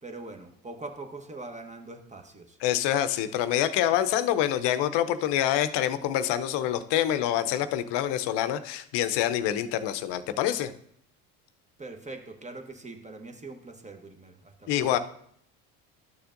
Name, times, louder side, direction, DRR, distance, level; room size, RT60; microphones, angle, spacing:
voice 1, 0.0-2.6 11.8-14.9, right 2 dB, 15° right, 5 dB, 1.1 m, -42 dB
voice 2, 2.6-10.7 14.7-15.0, left 11 dB, 60° left, 11 dB, 0.7 m, -26 dB
12.5 x 6.8 x 2.5 m, 0.67 s
hypercardioid pair, 70°, 46 cm